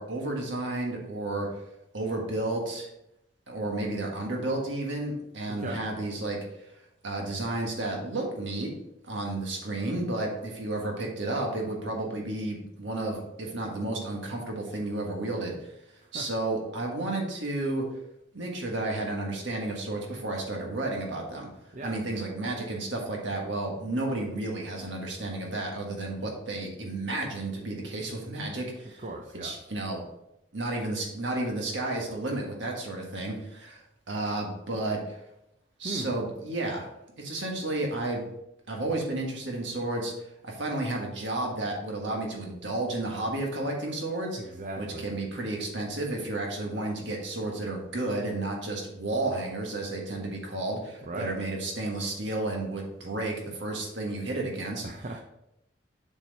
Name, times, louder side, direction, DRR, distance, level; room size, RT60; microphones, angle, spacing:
voice 1, 0.0-1.5 1.9-2.9 3.5-6.7 7.0-8.7 9.0-15.7 16.1-17.8 18.3-21.5 21.8-29.0 29.4-30.0 30.5-35.2 35.8-36.8 37.2-38.2 38.7-40.1 40.4-54.8, right 2 dB, 75° right, 0 dB, 1.6 m, -32 dB
voice 2, 5.5-5.8 16.1-16.3 21.7-21.9 29.0-29.5 35.8-36.1 44.4-45.1 51.0-51.3 54.8-55.2, right 2 dB, 40° right, 2 dB, 0.6 m, -37 dB
7.5 x 4.5 x 4.1 m, 0.85 s
head